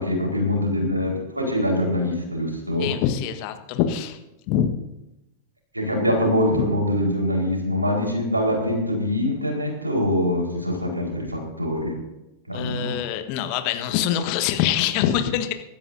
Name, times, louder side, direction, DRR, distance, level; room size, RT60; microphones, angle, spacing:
voice 1, 0.0-2.9 5.7-12.0 12.5-13.0, left 1 dB, 85° right, 0 dB, 4.3 m, -24 dB
voice 2, 2.8-4.2 4.5-4.7 6.5-6.7 12.5-15.5, left 10 dB, 45° left, 7 dB, 1.4 m, -24 dB
24.5 x 12.5 x 2.7 m, 0.95 s
figure-of-eight pair, 90°, 0 cm